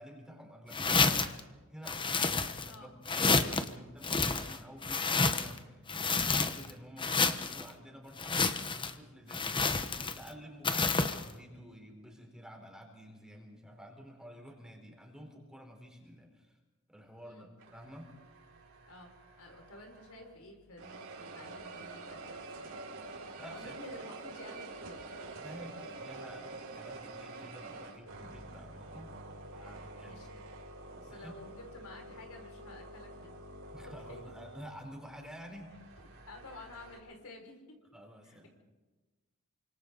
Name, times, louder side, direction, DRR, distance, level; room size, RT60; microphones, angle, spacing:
voice 1, 0.0-16.6 16.9-18.1 23.1-23.8 25.3-29.1 29.5-30.2 31.0-31.3 33.7-35.7 37.9-38.5, equal, 5° right, 1 dB, 4.4 m, -51 dB
sound 1, 0.7-1.4 1.9-2.7 3.1-3.7 4.0-5.6 5.9-6.7 7.0-7.6 8.2-8.9 9.3-10.3 10.6-11.2, left 4 dB, 20° left, 1.1 m, -29 dB
sound 2, 17.6-20.4 20.8-37.0, right 2 dB, 65° right, 4.9 m, -48 dB
voice 2, 18.9-23.0 23.5-25.1 30.0-30.3 30.7-33.3 33.8-34.2 36.3-37.8 38.2-38.5, left 2 dB, 80° left, 2 dB, 5.7 m, -52 dB
28.5 x 26.0 x 4.1 m, 1.2 s
head